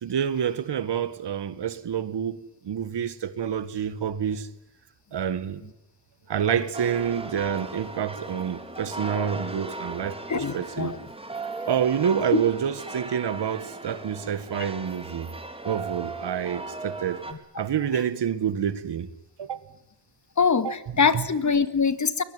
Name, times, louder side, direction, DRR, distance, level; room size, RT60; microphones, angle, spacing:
voice 1, 0.0-4.5 5.1-5.6 6.3-10.2 10.5-10.9 11.7-15.3 15.6-17.2 17.6-19.1 19.4-19.6 20.6-20.7, right 8 dB, 75° right, 1.7 m, -28 dB
sound 1, 6.7-17.3, right 2 dB, 15° right, 3.6 m, -37 dB
voice 2, 10.3-11.0 12.3-12.4 17.3-17.6 17.9-18.0 20.4-22.2, left 5 dB, 45° left, 2.1 m, -24 dB
22.5 x 21.5 x 9.6 m
cardioid pair, 95°, 42 cm